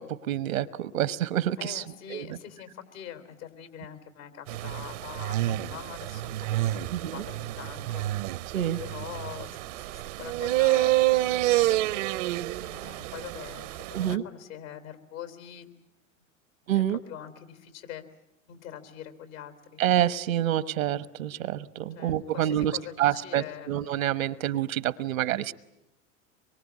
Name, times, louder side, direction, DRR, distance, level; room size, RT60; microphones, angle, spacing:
voice 1, 0.0-1.8 2.1-2.3 6.9-7.2 8.5-8.8 13.9-14.2 16.7-17.0 19.8-25.5, right 12 dB, 75° right, 16 dB, 1.2 m, -27 dB
voice 2, 1.6-6.3 6.6-8.1 8.8-12.0 12.6-15.7 16.2-16.3 16.7-18.0 18.5-19.8 22.0-23.8, left 10 dB, 75° left, 8 dB, 3.7 m, -44 dB
sound 1, 4.5-14.1, right 16 dB, 60° right, 0.9 m, -28 dB
25.0 x 23.0 x 8.6 m, 0.85 s
hypercardioid pair, 90°, 41 cm